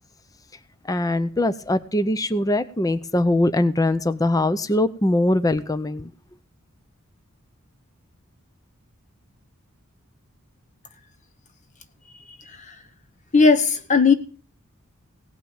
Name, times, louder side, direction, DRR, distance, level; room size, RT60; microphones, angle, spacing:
voice 1, 0.9-6.1, left 1 dB, 15° left, 0.6 m, -22 dB
voice 2, 13.3-14.1, left 4 dB, 35° left, 0.9 m, -17 dB
17.5 x 5.9 x 8.8 m
head